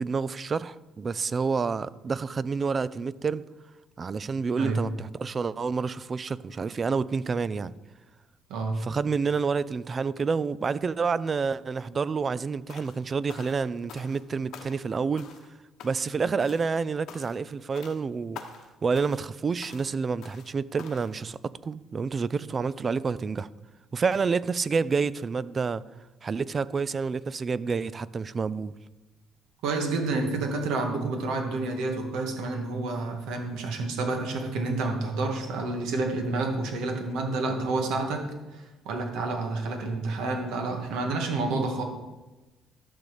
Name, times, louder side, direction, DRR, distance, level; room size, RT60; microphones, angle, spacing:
voice 1, 0.0-3.4 4.0-7.7 8.8-15.3 15.8-18.4 18.8-23.5 23.9-25.8 26.2-28.7 41.5-41.7, right 5 dB, 30° right, 0.3 m, -28 dB
sound 1, 12.7-13.0 13.3-14.2 14.5-14.9 15.2-15.5 15.8-16.2 16.4-16.7 17.1-17.5 17.7-18.0 18.3-18.7 18.9-19.3 19.6-19.9 20.2-20.5 20.8-21.1, left 7 dB, 70° left, 1.0 m, -46 dB
voice 2, 29.6-38.2 38.5-41.8, right 3 dB, 80° right, 1.7 m, -29 dB
12.0 x 4.0 x 6.7 m
cardioid pair, 110°, 0 cm